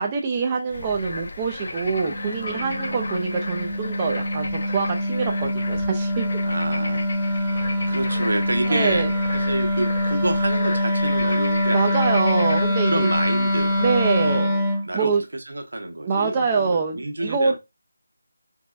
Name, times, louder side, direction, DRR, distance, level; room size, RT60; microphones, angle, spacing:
voice 1, 0.0-6.3 8.7-9.1 11.7-13.1 13.8-14.5 14.9-15.2 16.0-17.6, right 5 dB, 20° right, 0.4 m, -24 dB
Bird / Frog, 0.7-14.4, left 2 dB, 60° left, 0.8 m, -35 dB
Wind instrument woodwind instrument, 1.9-14.9, left 1 dB, 15° left, 0.9 m, -24 dB
voice 2, 2.4-3.1 6.4-7.1 7.4-7.6 7.9-12.3 12.9-13.8 14.2-17.6, right 1 dB, 80° right, 1.1 m, -29 dB
4.0 x 3.6 x 2.3 m
figure-of-eight pair, 170°, 0 cm